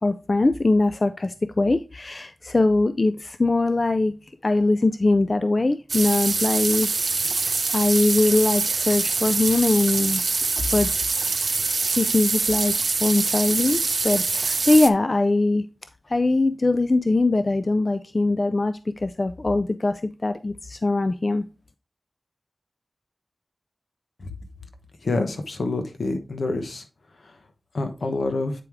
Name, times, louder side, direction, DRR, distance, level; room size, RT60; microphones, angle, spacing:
voice 1, 0.0-4.1 4.4-6.9 7.4-7.5 7.7-10.2 10.7-10.9 11.9-12.7 13.0-15.6 16.1-21.4, left 2 dB, 50° left, 11 dB, 0.4 m, -22 dB
sound 1, 5.9-14.9, right 4 dB, 80° right, 0.4 m, -24 dB
voice 2, 25.0-26.8 27.7-28.5, left 2 dB, 80° left, 6 dB, 1.0 m, -26 dB
8.3 x 4.7 x 3.5 m, 0.31 s
cardioid pair, 40°, 0 cm